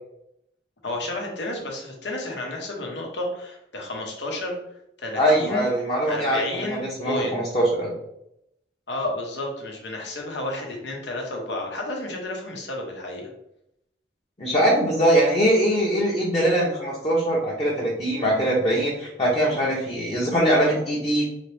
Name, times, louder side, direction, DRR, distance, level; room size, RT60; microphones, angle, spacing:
voice 1, 0.8-4.6 5.0-5.7 6.1-7.4 8.9-13.3, left 1 dB, 85° left, 0 dB, 1.1 m, -31 dB
voice 2, 5.2-7.9 14.4-21.2, right 1 dB, 30° left, -5 dB, 0.9 m, -22 dB
4.1 x 3.0 x 3.4 m, 0.79 s
head